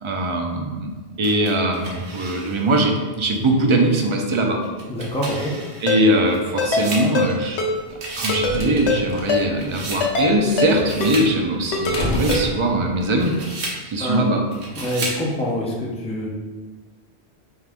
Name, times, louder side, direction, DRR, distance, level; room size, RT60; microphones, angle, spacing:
voice 1, 0.0-0.9 1.2-4.6 5.8-7.6 8.2-13.3 13.8-14.4, right 1 dB, 50° right, 2 dB, 0.3 m, -21 dB
sound 1, 1.2-2.8 3.3-3.4 4.6-7.6 7.9-8.5 8.8-10.1 10.5-11.3 11.7-12.5 13.0-13.8 14.5-15.2, right 2 dB, 80° right, 1.1 m, -33 dB
voice 2, 4.9-5.5 14.0-14.2 14.8-16.3, equal, 10° left, -3 dB, 0.5 m, -25 dB
Ringtone, 5.9-6.0 6.6-6.9 7.1-7.3 7.6-7.7 8.3-8.6 8.9-9.0 9.3-9.4 10.0-10.3 10.6-10.7 11.0-11.1 11.7-12.0 12.3-12.4, left 4 dB, 85° left, 0.9 m, -21 dB
sound 2, 7.9-13.2, left 1 dB, 50° left, 0.7 m, -31 dB
4.5 x 2.5 x 3.5 m, 1.4 s
omnidirectional pair, 1.1 m